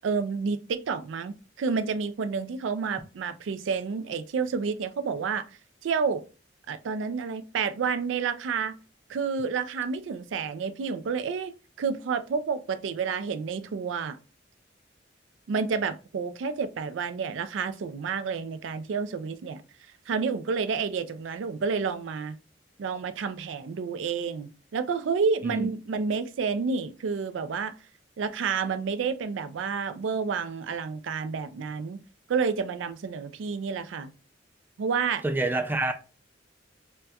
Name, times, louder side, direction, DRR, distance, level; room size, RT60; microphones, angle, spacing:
voice 1, 0.0-5.4 5.8-6.2 6.7-8.7 9.1-14.2 15.5-19.6 20.1-22.4 22.8-27.7 28.2-32.0 32.3-34.1 34.8-35.2, right 5 dB, 90° right, 0.4 m, -30 dB
voice 2, 35.2-36.0, right 2 dB, 10° right, 0.3 m, -27 dB
4.1 x 2.2 x 2.3 m
head